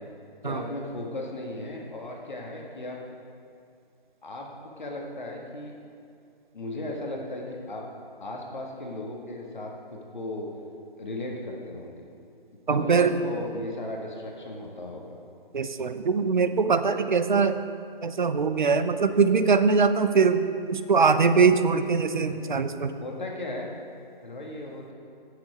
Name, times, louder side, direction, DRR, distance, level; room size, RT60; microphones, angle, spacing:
voice 1, 0.4-3.0 4.2-4.5 4.8-5.7 6.5-7.9 8.2-10.5 11.0-12.0 12.7-15.2 22.1-22.4 23.0-23.7 24.2-24.9, left 1 dB, 55° left, 0 dB, 1.9 m, -36 dB
voice 2, 12.7-13.2 15.5-17.6 18.0-22.9, right 5 dB, 55° right, 10 dB, 0.8 m, -22 dB
16.0 x 7.1 x 5.1 m, 2.4 s
figure-of-eight pair, 140°, 29 cm